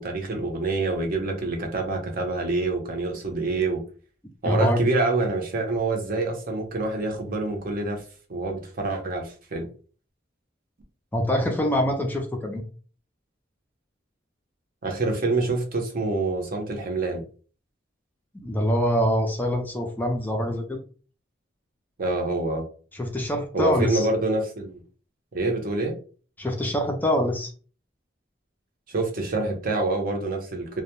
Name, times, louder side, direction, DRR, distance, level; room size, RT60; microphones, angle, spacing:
voice 1, 0.0-3.8 4.4-8.0 8.3-9.7 14.8-17.2 22.0-22.7 23.5-24.8 25.3-26.0 28.9-30.8, right 2 dB, 50° right, 2 dB, 0.6 m, -26 dB
voice 2, 4.4-4.8 11.1-12.6 18.3-20.8 22.9-24.1 26.4-27.5, equal, 10° left, 2 dB, 0.4 m, -24 dB
2.1 x 2.0 x 2.9 m, 0.38 s
head